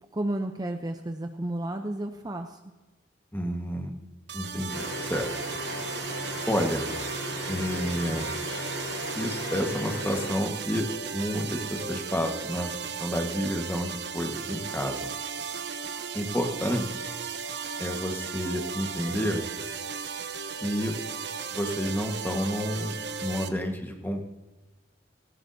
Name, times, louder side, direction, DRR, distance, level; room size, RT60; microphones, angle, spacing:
voice 1, 0.1-2.6, right 1 dB, 20° right, 6 dB, 0.6 m, -32 dB
voice 2, 3.3-3.9 4.3-5.3 6.5-6.9 7.5-8.3 9.2-10.9 11.1-15.0 16.1-16.9 17.8-19.4 20.5-20.9 21.5-23.0 23.2-24.2, equal, 10° left, 3 dB, 1.4 m, -30 dB
sound 1, 4.3-23.5, right 6 dB, 65° right, 0.9 m, -36 dB
sound 2, 4.7-10.3, left 1 dB, 90° left, 4.2 m, -36 dB
18.0 x 16.0 x 2.7 m, 1.2 s
head